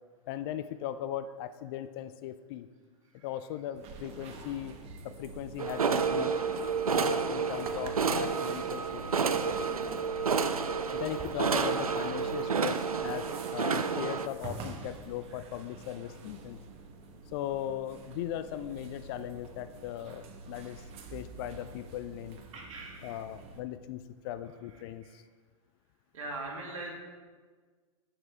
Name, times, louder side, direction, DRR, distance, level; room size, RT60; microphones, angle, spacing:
voice 1, 0.3-2.7 3.2-4.8 5.0-6.4 6.9-9.7 10.9-16.6 17.3-20.8 21.1-22.4 23.0-25.2, left 11 dB, 45° left, 12 dB, 0.4 m, -38 dB
sound 1, 3.7-23.6, right 3 dB, 35° right, 1.1 m, -47 dB
sound 2, 5.6-14.3, right 5 dB, 80° right, 0.6 m, -30 dB
voice 2, 22.5-23.2 26.1-26.9, right 2 dB, 65° right, -1 dB, 2.4 m, -41 dB
10.5 x 7.4 x 3.5 m, 1.5 s
figure-of-eight pair, 100°, 18 cm